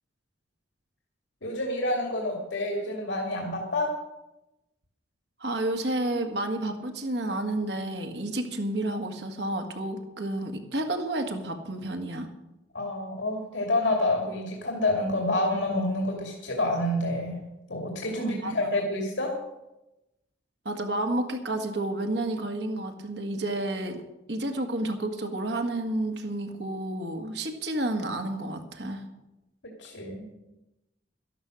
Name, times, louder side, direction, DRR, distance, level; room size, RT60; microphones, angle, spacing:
voice 1, 1.4-3.9 12.7-17.4 17.7-19.3 29.8-30.3, left 1 dB, 80° left, 0 dB, 2.6 m, -28 dB
voice 2, 5.4-12.3 18.2-18.7 20.7-24.0 24.3-29.0, right 1 dB, 65° right, 4 dB, 1.8 m, -30 dB
12.5 x 11.5 x 6.4 m, 0.95 s
head